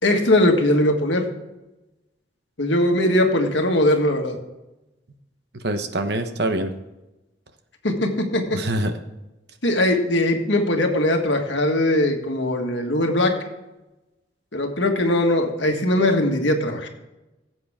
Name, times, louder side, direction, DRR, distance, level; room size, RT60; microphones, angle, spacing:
voice 1, 0.0-1.3 2.6-4.4 7.8-8.6 9.6-13.4 14.5-16.9, left 1 dB, 80° left, 3 dB, 1.7 m, -20 dB
voice 2, 5.5-6.7 8.5-8.9, right 1 dB, 60° right, 8 dB, 1.0 m, -25 dB
16.0 x 8.0 x 3.6 m, 1.0 s
head